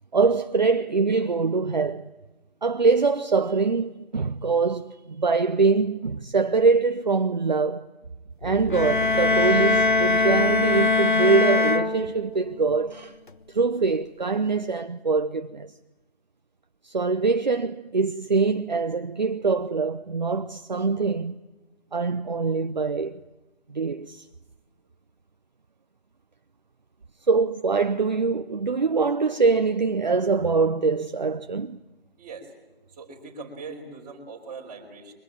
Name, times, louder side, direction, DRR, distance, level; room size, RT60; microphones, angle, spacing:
voice 1, 0.1-2.1 2.6-7.8 8.4-13.2 13.5-15.7 16.8-21.4 21.9-23.2 23.7-24.3 27.3-31.8, right 4 dB, 45° right, 0.8 m, -23 dB
sound 1, 8.4-12.4, right 1 dB, 85° left, 5.1 m, -36 dB
sound 2, 8.7-12.5, left 3 dB, 55° left, 1.2 m, -22 dB
voice 2, 32.2-32.5 32.9-35.1, right 4 dB, 10° right, 3.5 m, -41 dB
23.5 x 23.0 x 8.9 m
figure-of-eight pair, 170°, 31 cm